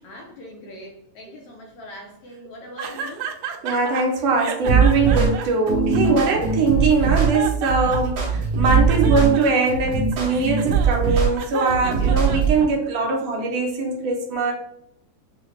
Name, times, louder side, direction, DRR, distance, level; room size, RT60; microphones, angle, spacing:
voice 1, 0.0-3.3, left 1 dB, 75° left, 0 dB, 1.4 m, -41 dB
sound 1, 2.8-4.0 4.4-6.5 7.0-8.2 8.6-12.9, right 8 dB, 90° right, 1.4 m, -32 dB
voice 2, 3.6-14.5, right 4 dB, 75° right, 1 dB, 1.7 m, -21 dB
sound 2, 4.7-12.6, right 5 dB, 55° right, 1.5 m, -21 dB
6.3 x 2.2 x 3.1 m, 0.76 s
omnidirectional pair, 3.4 m